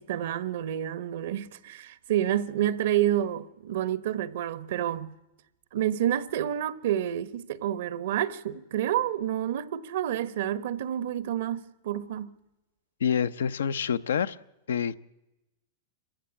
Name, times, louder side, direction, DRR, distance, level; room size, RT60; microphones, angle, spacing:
voice 1, 0.0-5.1 5.7-12.3, right 11 dB, 70° right, 1.2 m, -29 dB
voice 2, 13.0-14.4 14.7-14.9, left 7 dB, 90° left, 0.7 m, -27 dB
26.0 x 15.5 x 8.5 m
hypercardioid pair, 120°, 0 cm